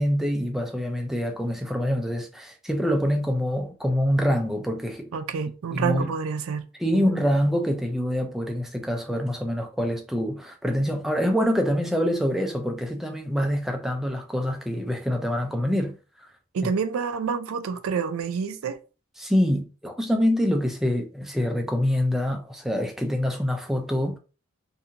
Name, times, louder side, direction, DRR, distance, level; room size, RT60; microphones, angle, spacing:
voice 1, 0.0-5.1 5.7-6.1 6.8-16.3 16.6-16.7 19.2-24.2, equal, ahead, 0.3 m, -25 dB
voice 2, 5.1-6.7 6.9-7.2 16.5-18.8, right 6 dB, 75° right, 0.4 m, -28 dB
2.6 x 2.5 x 2.7 m
head